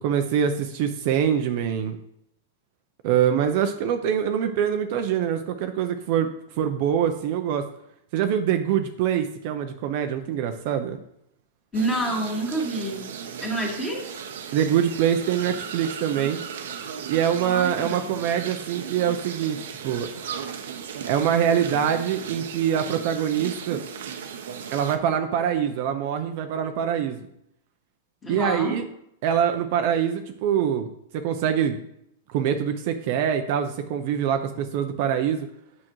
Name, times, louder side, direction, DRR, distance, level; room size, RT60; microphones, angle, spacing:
voice 1, 0.0-2.0 3.0-7.6 8.1-11.0 14.5-16.4 17.1-20.1 21.1-23.8 24.7-27.3 28.3-28.9 29.2-30.9 31.1-31.8 32.3-35.5, right 9 dB, 45° right, 6 dB, 0.6 m, -24 dB
voice 2, 11.7-13.0 13.4-14.2 17.5-18.2 28.2-28.7, right 1 dB, 15° left, -1 dB, 1.8 m, -28 dB
sound 1, 11.7-25.0, right 7 dB, 80° right, 0.8 m, -36 dB
8.7 x 6.0 x 3.1 m, 0.77 s
supercardioid pair, 155°, 0 cm